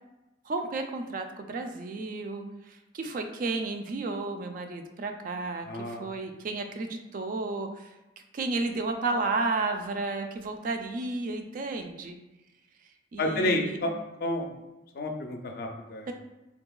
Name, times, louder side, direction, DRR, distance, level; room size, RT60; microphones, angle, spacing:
voice 1, 0.4-7.9 8.3-12.2 13.1-13.8 16.1-16.2, right 3 dB, 45° right, 5 dB, 0.3 m, -32 dB
voice 2, 5.6-6.1 13.2-14.0 14.2-14.5 14.9-16.1, left 1 dB, 55° left, 4 dB, 0.4 m, -30 dB
3.7 x 2.7 x 2.3 m, 1.0 s
head